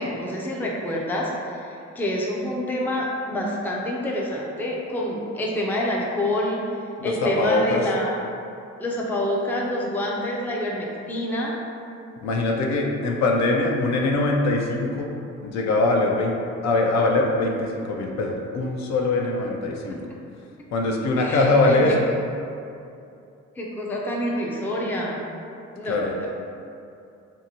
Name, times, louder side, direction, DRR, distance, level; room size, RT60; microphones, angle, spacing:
voice 1, 0.0-6.7 7.0-8.2 8.8-11.5 21.2-21.8 23.6-25.2 25.8-26.3, left 1 dB, 5° left, -3 dB, 0.4 m, -27 dB
voice 2, 7.0-7.9 12.2-15.1 15.4-16.4 16.6-20.0 20.7-21.9 25.8-26.1, left 2 dB, 65° left, 0 dB, 0.5 m, -22 dB
2.7 x 2.5 x 2.8 m, 2.6 s
cardioid pair, 90°, 30 cm